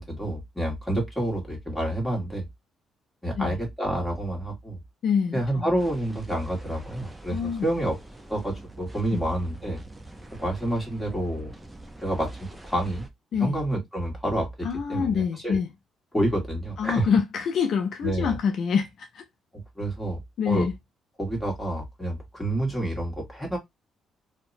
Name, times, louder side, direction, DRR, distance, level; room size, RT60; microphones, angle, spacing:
voice 1, 0.0-2.5 3.2-4.8 5.3-8.0 8.3-9.8 10.4-11.5 12.0-13.1 13.4-15.6 16.1-17.1 18.0-18.4 19.8-20.2 20.4-20.7 21.2-23.6, right 1 dB, 10° left, 1.4 m, -28 dB
voice 2, 5.0-5.7 7.3-7.7 9.1-9.2 13.3-13.6 14.6-15.7 16.8-19.2 20.4-20.7, left 6 dB, 65° left, 0.4 m, -26 dB
sound 1, 5.8-13.1, right 1 dB, 10° right, 0.5 m, -46 dB
2.7 x 2.1 x 2.5 m
cardioid pair, 90°, 0 cm